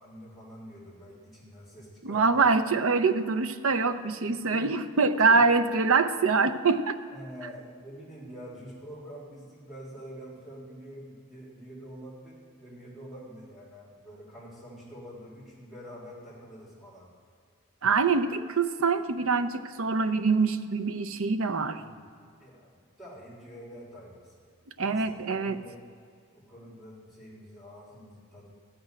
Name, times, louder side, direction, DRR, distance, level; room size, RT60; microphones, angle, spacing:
voice 1, 0.0-2.4 4.5-4.7 5.3-5.4 7.1-17.1 21.7-21.9 22.4-25.8 26.3-28.5, equal, ahead, -8 dB, 3.2 m, -46 dB
voice 2, 2.0-7.0 17.8-21.8 24.8-25.6, right 4 dB, 70° right, 9 dB, 0.7 m, -24 dB
13.0 x 6.0 x 9.0 m, 2.3 s
head